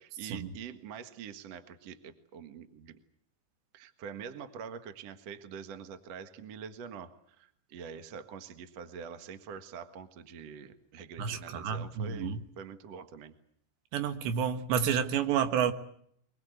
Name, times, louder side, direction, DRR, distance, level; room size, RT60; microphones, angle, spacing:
voice 1, 0.0-3.0 3.7-13.3, right 7 dB, 55° right, 9 dB, 1.9 m, -45 dB
voice 2, 11.2-12.4 13.9-15.7, right 7 dB, 75° right, 10 dB, 3.5 m, -30 dB
24.0 x 21.5 x 8.1 m, 0.67 s
omnidirectional pair, 5.2 m